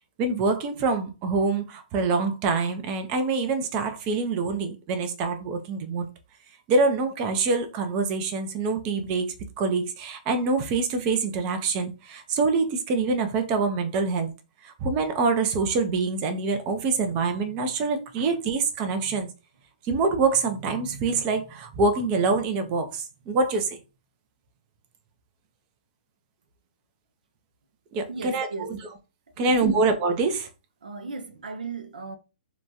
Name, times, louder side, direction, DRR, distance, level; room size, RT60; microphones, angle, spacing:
voice 1, 0.2-6.0 6.7-14.3 14.6-19.3 19.9-23.8 27.9-28.9 29.4-30.5, right 4 dB, 30° right, 0.5 m, -25 dB
voice 2, 28.1-28.7 29.4-29.9 30.8-32.2, right 4 dB, 75° right, 0.5 m, -36 dB
2.9 x 2.3 x 2.6 m
hypercardioid pair, 140°, 5 cm